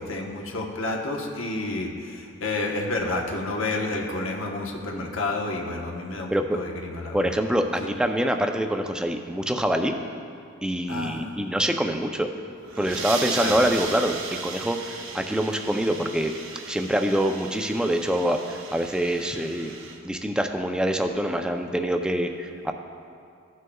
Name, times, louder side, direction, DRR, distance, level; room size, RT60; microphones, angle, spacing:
voice 1, 0.1-7.3 7.8-7.9 10.9-11.3 13.3-13.6, left 2 dB, 85° left, 0 dB, 1.1 m, -30 dB
voice 2, 7.1-10.0 10.6-12.3 12.8-16.3 16.7-19.7 20.0-22.7, equal, 5° right, 5 dB, 0.4 m, -25 dB
sound 1, 12.5-20.0, right 5 dB, 80° right, 0.8 m, -36 dB
15.5 x 6.4 x 2.3 m, 2.4 s
head